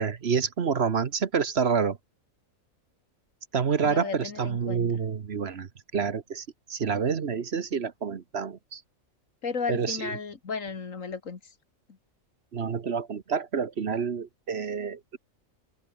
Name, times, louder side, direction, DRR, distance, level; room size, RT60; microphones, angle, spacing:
voice 1, 0.0-2.0 3.5-8.8 9.7-10.1 12.5-15.2, right 6 dB, 55° right, 1.3 m, -28 dB
voice 2, 3.8-5.0 9.4-11.5, left 5 dB, 70° left, 2.4 m, -34 dB
omnidirectional pair, 1.4 m